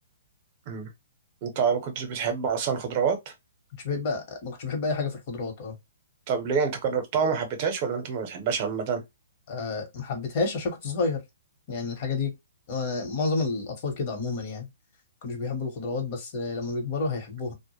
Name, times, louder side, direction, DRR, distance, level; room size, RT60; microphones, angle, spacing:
voice 1, 1.4-3.3 6.3-9.0, right 6 dB, 40° right, 0.8 m, -27 dB
voice 2, 3.8-5.8 9.5-11.2 11.7-12.3 12.7-14.7 15.2-17.5, left 4 dB, 45° left, 1.0 m, -30 dB
2.1 x 2.1 x 3.1 m
hypercardioid pair, 135°, 0 cm